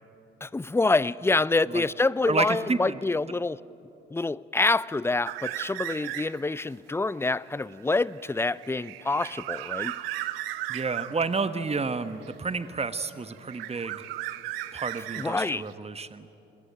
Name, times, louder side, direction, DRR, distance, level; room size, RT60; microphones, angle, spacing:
voice 1, 0.4-3.6 4.1-9.9 15.2-15.7, left 3 dB, 10° left, 21 dB, 0.5 m, -26 dB
voice 2, 2.3-3.0 10.7-14.0 14.7-16.3, right 4 dB, 20° right, 12 dB, 1.2 m, -30 dB
sound 1, 5.3-6.5 7.0-11.2 12.2-13.0 13.3-15.7, right 15 dB, 75° right, 0.9 m, -36 dB
27.0 x 21.0 x 9.1 m, 3.0 s
figure-of-eight pair, 45°, 29 cm